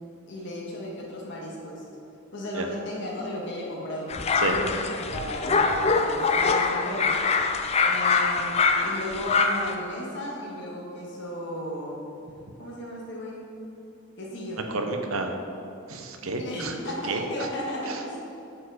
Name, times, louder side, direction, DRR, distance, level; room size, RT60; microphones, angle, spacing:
voice 1, 0.3-1.8 2.3-4.8 5.1-7.1 7.8-12.0 12.6-13.5 14.2-14.6 16.4-18.2, left 1 dB, 55° left, -4 dB, 1.8 m, -35 dB
sound 1, 4.1-9.7, left 4 dB, 30° left, 0.4 m, -24 dB
voice 2, 14.7-15.3 15.9-16.7 17.1-17.2, right 3 dB, 75° right, 4 dB, 0.8 m, -30 dB
8.4 x 4.7 x 5.0 m, 2.8 s
head